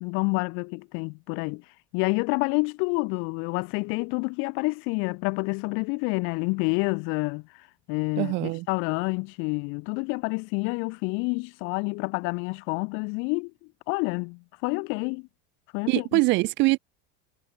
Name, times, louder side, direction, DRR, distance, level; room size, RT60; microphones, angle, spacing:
voice 1, 0.0-1.6 1.9-13.5 13.9-15.3 15.7-16.2, left 32 dB, 40° left, 0.4 m, -28 dB
voice 2, 8.2-8.7 15.9-16.8, right 23 dB, 35° right, 0.5 m, -23 dB
cardioid pair, 175°, 34 cm